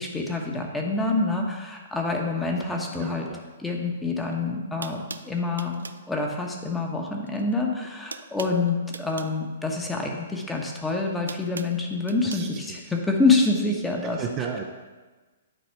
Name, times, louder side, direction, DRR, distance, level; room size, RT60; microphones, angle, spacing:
voice 1, 0.0-3.3 3.6-14.2, left 3 dB, 10° left, 1 dB, 1.1 m, -26 dB
voice 2, 2.9-3.4 12.2-12.6 14.0-14.6, right 7 dB, 30° right, 3 dB, 0.6 m, -34 dB
sound 1, 4.3-4.4 4.8-6.1 7.2-7.5 7.8-9.4 10.5-12.5, right 4 dB, 80° right, 0.4 m, -40 dB
9.2 x 4.1 x 4.6 m, 1.3 s
figure-of-eight pair, 125°, 0 cm